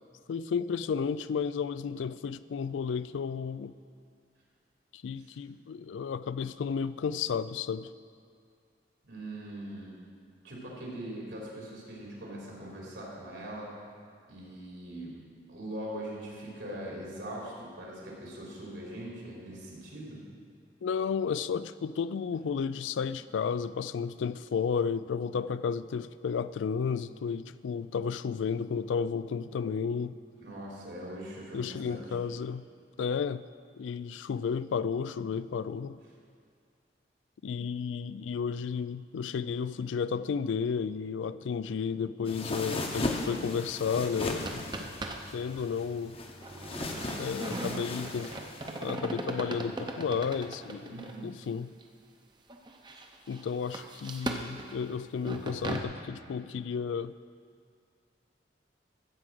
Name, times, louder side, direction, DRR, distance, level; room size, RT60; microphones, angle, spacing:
voice 1, 0.3-3.7 4.9-7.9 20.8-30.2 31.5-32.7 33.0-33.4 33.8-36.0 37.4-44.9 45.3-46.2 47.2-48.3 48.8-50.9 51.2-51.7 53.3-57.1, left 6 dB, 90° left, 15 dB, 0.3 m, -32 dB
voice 2, 9.0-10.0 10.4-13.7 14.3-15.2 15.5-20.2 30.4-32.2 50.9-51.3, right 1 dB, 80° right, -4 dB, 3.3 m, -41 dB
sound 1, 42.2-48.9, left 2 dB, 30° left, 0.8 m, -37 dB
sound 2, 44.0-45.3 45.6-45.7 46.4-51.2 51.8-51.9 52.5-55.8, right 2 dB, 25° right, 0.6 m, -38 dB
14.0 x 4.9 x 7.5 m, 2.2 s
head